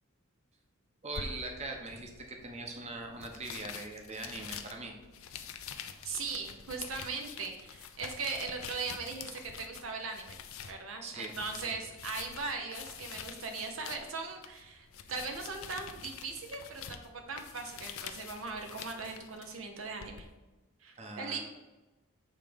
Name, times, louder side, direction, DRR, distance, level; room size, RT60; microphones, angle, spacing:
voice 1, 1.0-4.9 11.0-11.3 11.6-11.8 21.0-21.4, right 2 dB, 30° right, 2 dB, 0.9 m, -41 dB
sound 1, 1.1-20.2, left 7 dB, 75° left, 0.6 m, -47 dB
voice 2, 5.7-10.4 10.7-20.3 20.8-21.4, right 4 dB, 70° right, 4 dB, 0.8 m, -39 dB
7.3 x 3.5 x 5.1 m, 1.1 s
head